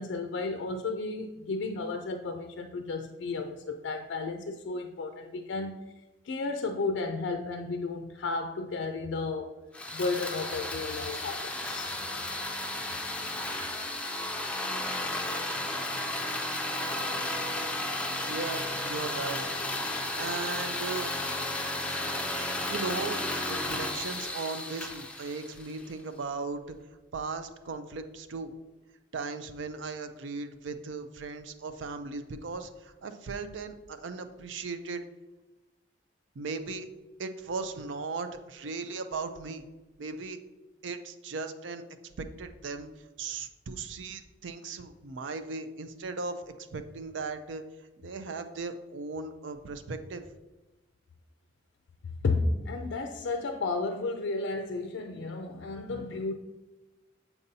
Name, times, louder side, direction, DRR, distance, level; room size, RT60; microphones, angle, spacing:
voice 1, 0.0-5.8 6.2-9.5 9.9-12.0 52.2-56.3, left 3 dB, 85° left, 0.4 m, -33 dB
sound 1, 9.7-25.9, left 1 dB, 5° left, 0.4 m, -33 dB
voice 2, 18.2-19.4 20.1-21.1 21.7-22.0 22.7-26.6 27.1-28.5 29.1-35.0 36.4-36.9 37.2-39.6 40.0-40.4 40.8-41.8 42.2-42.9 43.2-47.6 48.0-50.2, right 4 dB, 85° right, 0.5 m, -37 dB
7.0 x 5.3 x 2.7 m
head